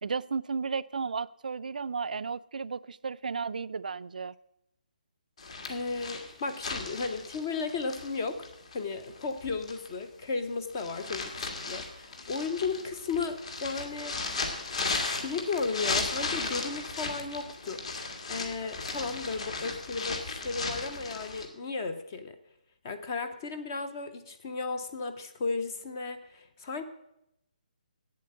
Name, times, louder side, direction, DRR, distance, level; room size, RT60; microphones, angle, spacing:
voice 1, 0.0-4.4, right 5 dB, 70° right, 17 dB, 0.4 m, -34 dB
sound 1, 5.4-10.0 10.5-21.5, left 3 dB, 45° left, 1.7 m, -36 dB
voice 2, 5.7-8.5 8.7-14.5 14.8-22.3 22.8-26.8, left 4 dB, 20° left, 9 dB, 0.6 m, -35 dB
8.5 x 7.7 x 8.3 m, 0.82 s
hypercardioid pair, 175°, 5 cm